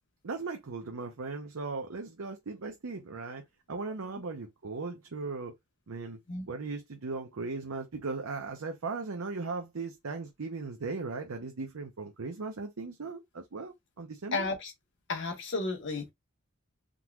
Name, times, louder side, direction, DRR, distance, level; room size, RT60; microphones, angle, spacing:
voice 1, 0.2-3.4 3.7-5.5 5.9-6.2 6.5-14.5, right 4 dB, 70° right, 0.6 m, -38 dB
voice 2, 14.3-14.7 15.1-16.1, left 3 dB, 55° left, 1.2 m, -32 dB
3.7 x 3.0 x 2.3 m
head